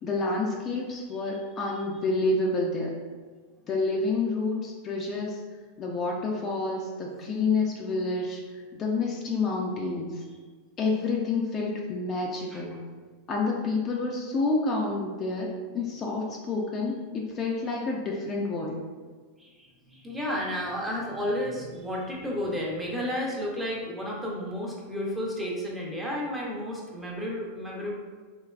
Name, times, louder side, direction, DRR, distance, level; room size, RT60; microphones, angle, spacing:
voice 1, 0.0-3.0 3.7-5.4 5.8-8.4 8.7-10.2 10.8-12.8 13.3-18.8, left 3 dB, 25° left, -1 dB, 0.4 m, -29 dB
voice 2, 19.4-27.9, equal, 10° right, -3 dB, 0.7 m, -32 dB
3.3 x 3.0 x 2.4 m, 1.5 s
supercardioid pair, 140°, 0 cm